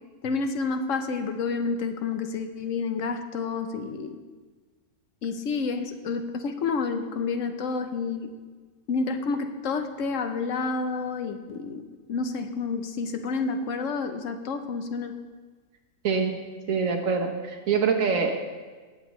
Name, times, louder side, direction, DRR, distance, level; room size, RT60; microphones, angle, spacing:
voice 1, 0.2-4.2 5.2-8.3 8.9-11.8 12.1-15.1, left 4 dB, 70° left, 7 dB, 1.1 m, -29 dB
voice 2, 16.0-16.3 16.7-18.4, right 5 dB, 70° right, 2 dB, 1.6 m, -25 dB
17.5 x 7.9 x 3.1 m, 1.4 s
omnidirectional pair, 1.4 m